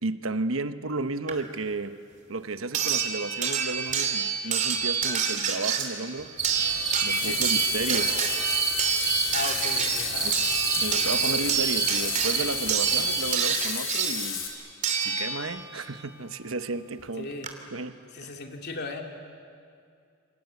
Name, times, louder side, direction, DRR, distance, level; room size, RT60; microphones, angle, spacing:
voice 1, 0.0-2.0 2.3-6.3 7.0-8.3 10.2-10.5 10.8-14.5 15.0-17.3 17.7-18.3, right 3 dB, 75° right, 1.1 m, -33 dB
sound 1, 1.3-1.4 2.7-15.7 17.0-17.1 17.4-17.5, right 6 dB, 40° right, 2.9 m, -28 dB
Bathtub (filling or washing), 6.4-14.5, left 8 dB, 70° left, 4.6 m, -33 dB
sound 2, 6.4-13.3, right 5 dB, 55° right, 3.4 m, -30 dB
voice 2, 9.3-10.3 17.2-17.5 18.1-19.0, left 2 dB, 55° left, 2.7 m, -36 dB
28.5 x 25.0 x 8.4 m
head